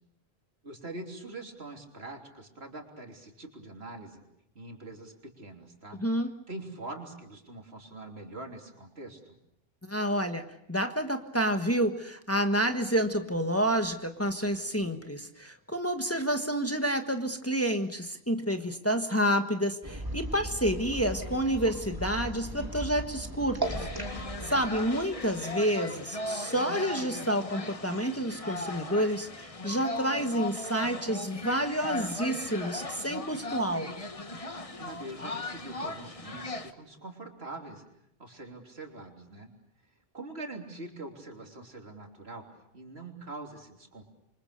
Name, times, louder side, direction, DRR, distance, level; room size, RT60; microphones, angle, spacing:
voice 1, 0.6-4.2 4.6-6.0 6.5-9.4 24.4-24.6 34.8-37.8 38.2-39.5 40.1-42.4 42.7-44.0, right 2 dB, 80° right, 2 dB, 3.6 m, -43 dB
voice 2, 6.0-6.3 9.8-23.9 24.5-33.9, equal, 15° left, 5 dB, 1.4 m, -29 dB
sound 1, 19.8-25.6, right 1 dB, 20° right, 3.3 m, -37 dB
sound 2, 23.6-36.7, left 2 dB, 35° left, 1.4 m, -38 dB
28.0 x 24.5 x 6.7 m, 0.80 s
omnidirectional pair, 1.0 m